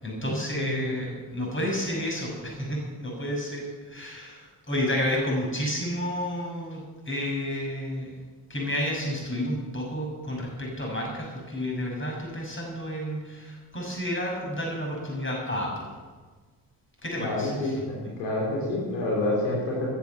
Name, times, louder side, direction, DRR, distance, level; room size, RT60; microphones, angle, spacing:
voice 1, 0.0-8.1 8.5-15.9 17.0-18.1, equal, 25° left, -1 dB, 6.3 m, -31 dB
voice 2, 0.5-0.9 17.2-17.7 18.2-19.9, left 2 dB, 70° left, -4 dB, 3.5 m, -28 dB
14.5 x 9.6 x 7.8 m, 1.4 s
figure-of-eight pair, 40°, 46 cm